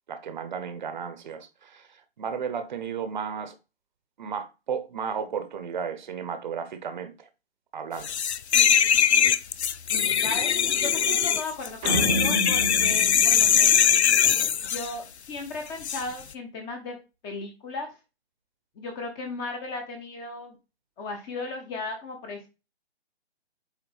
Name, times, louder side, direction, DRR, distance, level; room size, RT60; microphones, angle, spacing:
voice 1, 0.1-3.5 4.2-7.3 7.7-8.1, right 6 dB, 45° right, 0.9 m, -34 dB
sound 1, 8.0-14.9 15.8-16.0, left 8 dB, 80° left, 0.6 m, -21 dB
voice 2, 9.9-10.5 10.8-13.9 14.7-17.0 17.2-17.9 18.8-20.6 21.0-22.5, left 3 dB, 15° left, 0.8 m, -36 dB
sound 2, 11.8-14.3, right 1 dB, 5° right, 0.4 m, -30 dB
8.3 x 3.4 x 3.3 m
figure-of-eight pair, 145°, 33 cm